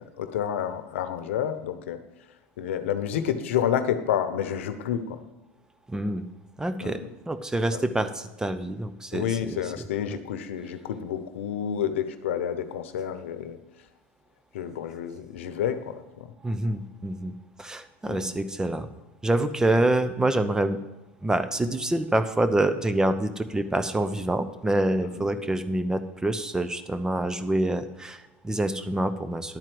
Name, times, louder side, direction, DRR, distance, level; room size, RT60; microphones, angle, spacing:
voice 1, 0.2-2.0 2.6-5.2 6.8-7.1 7.7-7.8 9.1-13.6 14.5-16.3 18.1-18.3 25.0-25.2, left 9 dB, 90° left, 10 dB, 0.9 m, -29 dB
voice 2, 5.9-6.2 6.6-10.2 16.4-17.3 17.6-18.9 19.2-20.8 21.2-29.6, right 1 dB, 10° right, 11 dB, 0.7 m, -26 dB
11.5 x 4.5 x 7.7 m, 1.1 s
supercardioid pair, 110°, 7 cm